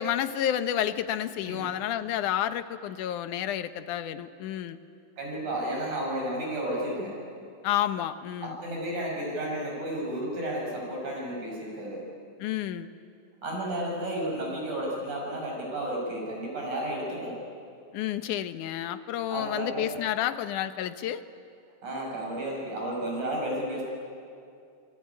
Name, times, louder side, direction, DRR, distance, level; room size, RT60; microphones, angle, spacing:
voice 1, 0.0-4.8 7.6-8.6 12.4-12.9 17.9-21.2, left 11 dB, 70° left, 11 dB, 2.3 m, -30 dB
voice 2, 5.2-7.1 8.4-12.0 13.4-17.3 19.3-19.9 21.8-23.8, right 1 dB, 60° right, -2 dB, 7.7 m, -32 dB
27.0 x 22.0 x 9.6 m, 2.4 s
omnidirectional pair, 3.9 m